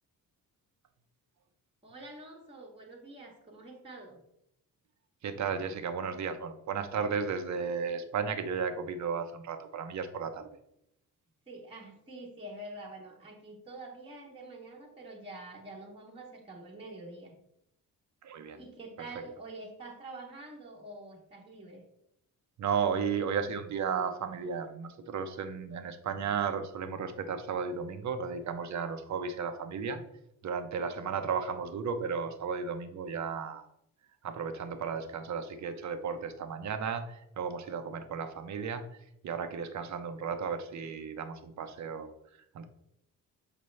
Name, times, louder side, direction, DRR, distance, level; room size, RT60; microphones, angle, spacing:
voice 1, 1.8-4.2 11.5-17.3 18.6-21.8, right 2 dB, 15° right, -2 dB, 1.1 m, -46 dB
voice 2, 5.2-10.5 18.2-18.6 22.6-30.0 30.4-33.7 34.2-38.8 39.2-42.1 42.5-42.6, right 6 dB, 50° right, 8 dB, 0.8 m, -34 dB
7.0 x 5.0 x 3.2 m, 0.78 s
cardioid pair, 140°, 35 cm